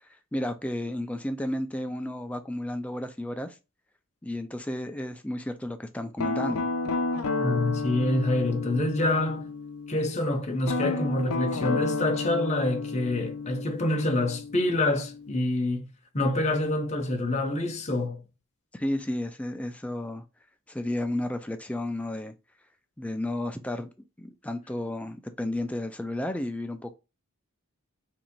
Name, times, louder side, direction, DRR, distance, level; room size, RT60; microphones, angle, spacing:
voice 1, 0.3-3.5 4.2-6.7 18.7-20.2 20.7-22.3 23.0-23.9 24.2-26.9, left 1 dB, 5° left, 0.3 m, -32 dB
Guitar, 6.2-10.0 10.6-15.4, left 3 dB, 80° left, 0.6 m, -31 dB
voice 2, 7.4-9.5 9.9-15.9 16.1-18.2, left 1 dB, 30° left, 0.7 m, -26 dB
2.9 x 2.7 x 4.4 m
head